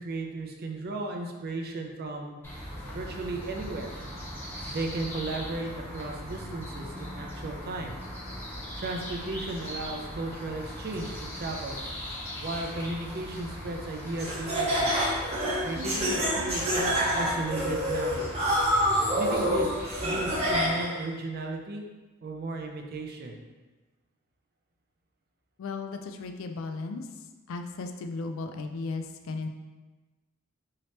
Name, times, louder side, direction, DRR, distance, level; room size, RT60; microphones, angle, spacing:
voice 1, 0.0-2.4 2.7-3.9 4.7-8.0 8.8-11.8 12.4-14.9 15.6-18.2 19.1-21.8 22.2-23.4, right 2 dB, 45° right, 2 dB, 0.4 m, -35 dB
sound 1, 2.4-20.7, equal, 10° left, 0.7 m, -39 dB
Laughter, 14.2-21.0, equal, 30° right, 0.9 m, -27 dB
voice 2, 25.6-27.1 27.5-29.5, left 3 dB, 65° left, 7 dB, 0.3 m, -35 dB
2.9 x 2.8 x 3.2 m, 1.2 s
head